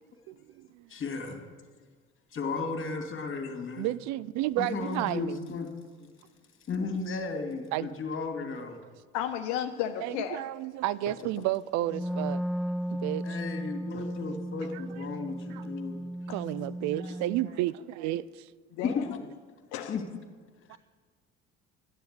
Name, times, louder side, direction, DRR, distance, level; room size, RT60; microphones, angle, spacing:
voice 1, 0.3-0.9 3.8-5.5 7.7-7.9 10.0-12.4 12.9-13.4 14.7-14.8 15.5-15.7 16.3-18.5 20.7-20.8, right 15 dB, 55° right, 0.5 m, -32 dB
voice 2, 0.9-1.4 2.3-3.9 4.6-5.7 6.0-6.1 6.7-8.8 13.2-16.0 18.8-19.2 19.9-20.0 20.7-20.8, left 4 dB, 40° left, 2.6 m, -34 dB
voice 3, 9.1-10.4 18.7-19.1 19.7-19.9, left 10 dB, 65° left, 0.9 m, -33 dB
Wind instrument woodwind instrument, 11.8-17.5, equal, ahead, 0.6 m, -35 dB
13.0 x 10.5 x 6.7 m
figure-of-eight pair, 50°, 33 cm